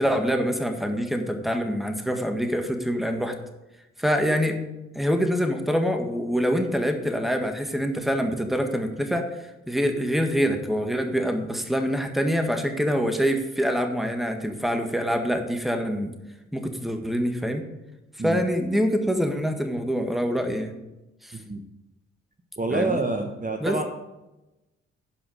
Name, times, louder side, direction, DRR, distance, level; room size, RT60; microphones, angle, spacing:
voice 1, 0.0-3.3 4.0-4.6 4.9-16.1 16.5-17.6 18.2-20.7 21.2-21.4 22.7-23.0 23.6-23.8, equal, ahead, 5 dB, 1.7 m, -25 dB
voice 2, 22.6-23.9, right 2 dB, 25° right, 4 dB, 1.2 m, -27 dB
11.5 x 5.0 x 6.3 m, 1.0 s
supercardioid pair, 45°, 31 cm